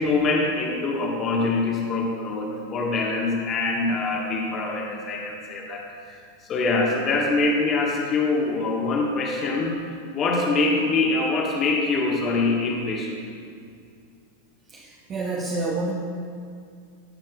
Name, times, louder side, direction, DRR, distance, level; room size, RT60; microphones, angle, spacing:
voice 1, 0.0-6.2 6.5-9.7 10.1-13.2, left 3 dB, 30° left, -1 dB, 1.4 m, -24 dB
voice 2, 14.7-15.9, right 2 dB, 30° right, -3 dB, 1.0 m, -28 dB
17.0 x 7.4 x 2.4 m, 2.3 s
figure-of-eight pair, 90°, 0 cm